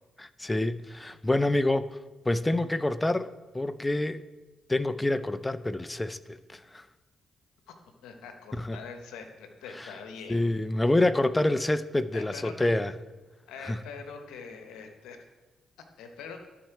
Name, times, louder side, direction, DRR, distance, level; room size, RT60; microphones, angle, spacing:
voice 1, 0.2-2.0 2.3-4.2 4.7-6.8 8.6-8.8 9.8-9.9 10.3-12.9 13.6-13.8, left 1 dB, 15° left, 0.4 m, -27 dB
voice 2, 8.0-10.5 12.1-12.7 13.5-15.2 16.0-16.4, left 5 dB, 85° left, 0.9 m, -43 dB
12.5 x 4.2 x 4.6 m
supercardioid pair, 60°, 0 cm